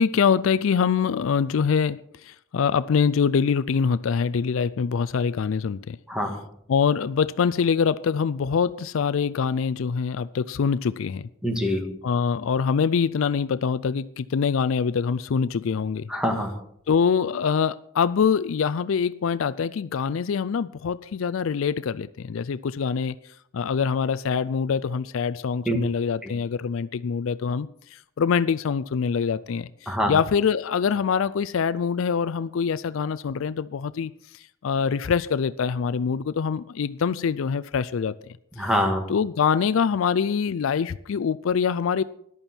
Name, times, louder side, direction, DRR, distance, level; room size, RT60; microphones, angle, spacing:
voice 1, 0.0-6.0 6.7-11.3 12.0-16.1 16.9-23.1 23.5-34.1 34.6-38.2 38.6-38.7 39.1-42.0, left 6 dB, 70° left, 0.4 m, -24 dB
voice 2, 6.1-6.4 11.4-12.0 16.1-16.5 25.7-25.8 26.2-26.3 29.9-30.1 38.5-39.1, equal, 5° right, 1.8 m, -25 dB
14.5 x 11.0 x 4.4 m
head